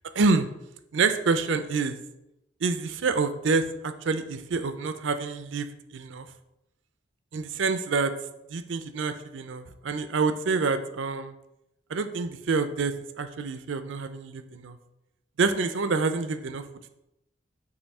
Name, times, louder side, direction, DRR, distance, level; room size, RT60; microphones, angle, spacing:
voice 1, 0.1-0.5 0.9-2.0 2.6-6.3 7.3-8.1 8.5-11.3 11.9-14.8 15.4-16.6, right 4 dB, 85° right, 10 dB, 0.5 m, -27 dB
6.7 x 2.7 x 5.4 m, 0.88 s
head